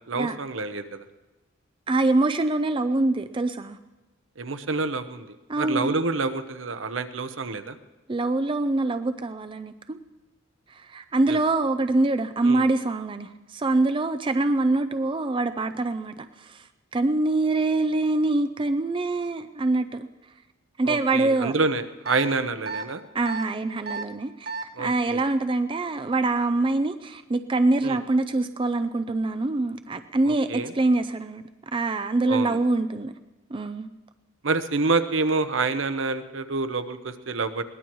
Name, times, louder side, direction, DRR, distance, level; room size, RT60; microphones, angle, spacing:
voice 1, 0.1-1.0 4.4-7.8 11.3-11.4 12.4-12.6 20.8-23.0 24.7-25.2 27.8-28.0 30.3-30.7 32.3-32.6 34.4-37.6, right 3 dB, 75° right, 9 dB, 0.9 m, -27 dB
voice 2, 1.9-3.8 5.5-5.9 8.1-10.0 10.7-16.7 16.9-20.1 20.8-21.5 23.1-24.5 24.8-31.4 31.7-33.1 33.5-33.9, right 2 dB, 25° right, 8 dB, 0.4 m, -24 dB
sound 1, 22.1-22.2 22.7-22.8 23.3-23.4 23.9-24.0 24.5-24.6, right 4 dB, 55° right, 1.2 m, -31 dB
21.5 x 18.0 x 3.1 m, 1.1 s
head